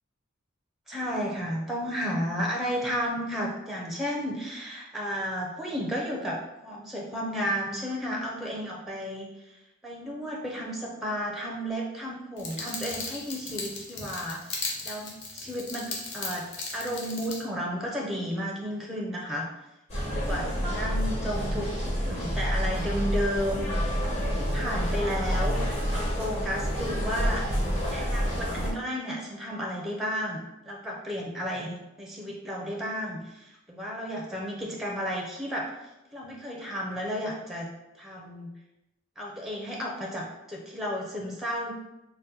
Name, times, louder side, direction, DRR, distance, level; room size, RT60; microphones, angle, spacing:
voice 1, 0.9-6.4 6.6-16.4 16.7-19.5 20.1-23.7 24.1-27.4 27.9-37.7 38.0-38.5 39.2-41.7, equal, ahead, -2 dB, 0.5 m, -33 dB
sound 1, 12.4-17.4, left 3 dB, 60° left, 0.8 m, -37 dB
sound 2, 19.9-28.7, equal, 30° left, 0.9 m, -28 dB
4.0 x 2.1 x 3.8 m, 0.93 s
head